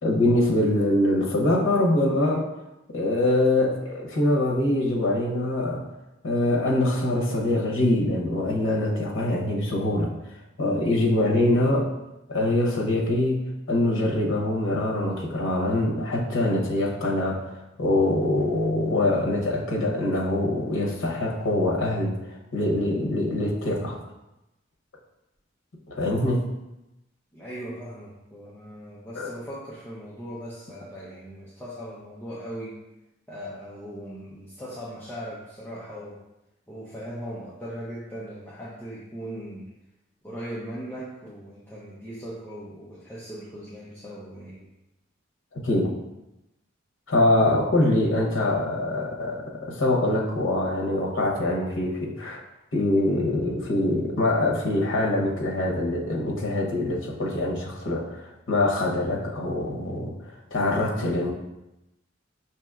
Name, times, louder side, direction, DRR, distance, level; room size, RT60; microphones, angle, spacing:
voice 1, 0.0-2.5 2.9-5.9 6.2-10.1 10.6-11.9 12.3-13.4 13.7-24.0 25.9-26.4 29.1-29.3 45.5-45.9 47.1-52.4 52.7-60.1 60.5-61.3, left 1 dB, 75° left, -2 dB, 0.8 m, -24 dB
voice 2, 27.3-32.8 33.3-36.2 36.7-39.7 40.2-44.7, equal, 10° left, -7 dB, 0.5 m, -39 dB
5.9 x 2.9 x 2.4 m, 0.94 s
head